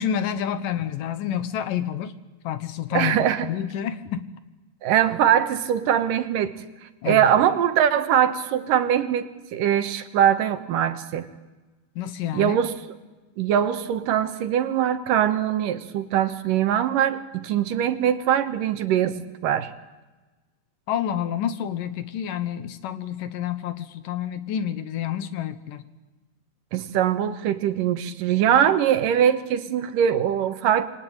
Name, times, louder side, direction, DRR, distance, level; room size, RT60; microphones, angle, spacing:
voice 1, 0.0-2.2 2.4-4.3 7.0-7.3 12.0-12.6 20.9-25.8, left 9 dB, 70° left, 12 dB, 2.6 m, -29 dB
voice 2, 2.9-3.5 4.8-6.5 7.1-11.3 12.3-12.7 13.4-19.7 26.7-30.9, right 10 dB, 75° right, 10 dB, 2.7 m, -22 dB
27.0 x 24.0 x 9.0 m, 1.2 s
omnidirectional pair, 4.1 m